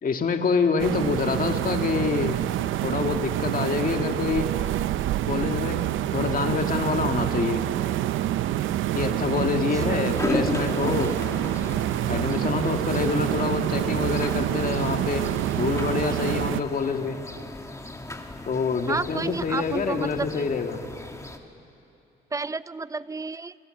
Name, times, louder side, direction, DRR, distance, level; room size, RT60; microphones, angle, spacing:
voice 1, 0.0-2.4 2.8-4.5 5.3-5.8 6.1-7.6 8.9-11.1 12.1-15.3 15.5-17.2 18.5-20.8, left 5 dB, 45° left, 5 dB, 1.9 m, -26 dB
sound 1, 0.8-16.6, right 13 dB, 80° right, 0.7 m, -27 dB
voice 2, 9.5-10.1 18.9-20.4 22.3-23.6, right 3 dB, 15° right, 17 dB, 0.5 m, -31 dB
sound 2, 10.1-21.4, left 2 dB, 15° left, 2.1 m, -35 dB
28.5 x 24.0 x 7.8 m, 2.7 s
cardioid pair, 90°, 20 cm